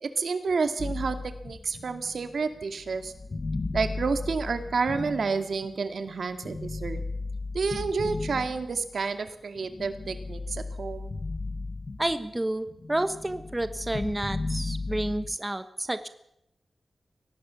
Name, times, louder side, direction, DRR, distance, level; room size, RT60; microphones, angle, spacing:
voice 1, 0.0-3.1 3.7-7.0 7.5-11.1, right 4 dB, 70° right, 8 dB, 2.2 m, -30 dB
sound 1, 0.8-5.9 6.4-9.1 9.6-12.4 12.7-15.4, left 3 dB, 40° left, 1.4 m, -35 dB
voice 2, 12.0-16.1, right 1 dB, 15° right, 10 dB, 1.2 m, -30 dB
24.0 x 18.5 x 7.1 m, 0.79 s
wide cardioid pair, 115°, 0 cm